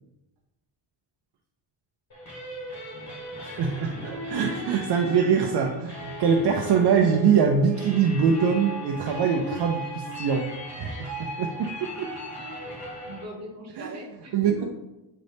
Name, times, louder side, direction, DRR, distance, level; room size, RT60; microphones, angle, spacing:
sound 1, 2.1-13.2, right 1 dB, 35° left, 1.6 m, -37 dB
voice 1, 3.4-10.4 10.8-12.1 13.8-14.0 14.3-14.6, right 6 dB, 55° right, 2 dB, 0.6 m, -23 dB
voice 2, 12.3-14.6, right 1 dB, 35° right, -1 dB, 1.2 m, -41 dB
7.6 x 4.0 x 3.4 m, 0.98 s
cardioid pair, 165°, 47 cm